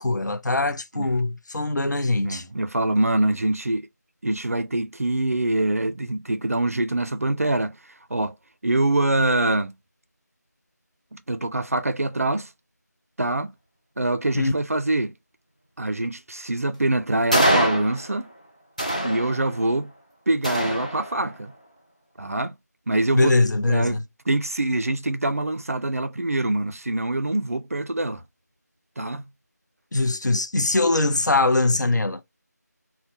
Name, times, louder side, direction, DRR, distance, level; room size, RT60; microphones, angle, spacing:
voice 1, 0.0-2.4 14.3-14.5 23.1-24.0 29.9-32.2, left 2 dB, 80° left, 0.6 m, -22 dB
voice 2, 2.2-3.9 4.2-8.4 8.6-9.7 11.1-12.5 13.2-13.5 14.0-15.1 15.8-18.3 19.0-19.9 20.3-21.5 22.2-22.5 22.9-23.4 23.7-24.0 24.3-28.2 29.0-29.3, right 2 dB, 55° right, 0.4 m, -24 dB
sound 1, 17.3-18.3 18.8-19.8 20.4-21.4, right 1 dB, 25° left, 0.4 m, -25 dB
2.2 x 2.1 x 2.7 m
figure-of-eight pair, 180°, 10 cm